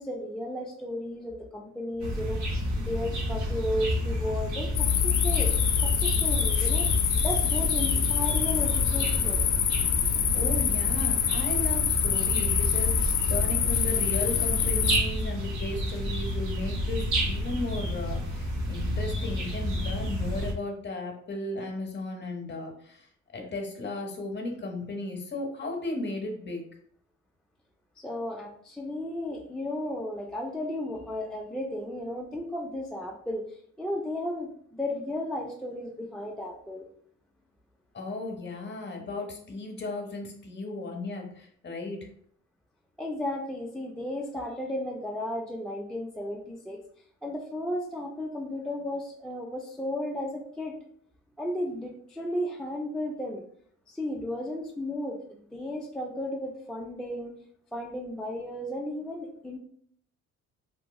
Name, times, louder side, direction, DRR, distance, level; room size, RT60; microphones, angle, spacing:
voice 1, 0.0-6.9 7.2-9.5 28.0-36.9 43.0-46.8 47.2-50.8 51.4-53.5 53.9-57.3 57.7-59.6, left 1 dB, ahead, -1 dB, 0.3 m, -34 dB
sound 1, 2.0-20.5, equal, 70° right, 0.8 m, -30 dB
sound 2, 4.8-15.0, left 8 dB, 70° left, 0.5 m, -26 dB
voice 2, 10.3-23.1 23.3-26.6 37.9-42.1, left 2 dB, 35° left, 2 dB, 0.8 m, -35 dB
3.0 x 2.7 x 2.2 m, 0.64 s
cardioid pair, 90°, 30 cm